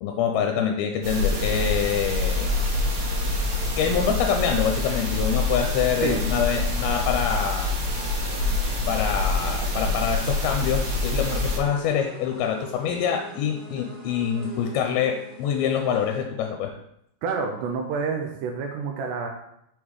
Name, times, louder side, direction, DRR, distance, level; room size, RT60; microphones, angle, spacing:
voice 1, 0.0-2.5 3.8-7.7 8.9-16.7, left 7 dB, 90° left, 3 dB, 2.5 m, -25 dB
sound 1, 1.0-11.6, left 2 dB, 55° right, 2.6 m, -26 dB
sound 2, 2.2-16.2, right 1 dB, 20° left, 1.3 m, -45 dB
sound 3, 4.9-10.1, left 2 dB, 65° left, 2.5 m, -47 dB
voice 2, 17.2-19.3, right 5 dB, 85° right, 2 dB, 1.9 m, -28 dB
6.3 x 3.7 x 4.7 m, 0.77 s
omnidirectional pair, 4.3 m